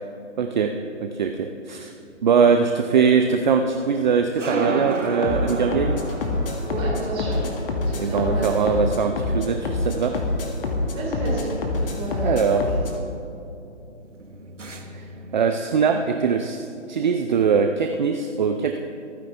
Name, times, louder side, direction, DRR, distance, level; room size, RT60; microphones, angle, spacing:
voice 1, 0.4-0.7 1.0-1.9 2.2-6.0 8.0-10.2 12.2-12.8 14.9-15.0 15.3-16.6 16.9-18.8, right 6 dB, 40° right, 5 dB, 0.7 m, -21 dB
sound 1, 1.6-15.4, right 3 dB, 80° right, 1.5 m, -35 dB
sound 2, 5.2-13.0, left 2 dB, 50° left, 1.9 m, -26 dB
voice 2, 6.7-7.5 7.8-8.9 10.9-11.5 11.8-12.4, right 2 dB, 15° right, -4 dB, 3.4 m, -30 dB
25.0 x 10.0 x 3.4 m, 2.8 s
figure-of-eight pair, 140°, 37 cm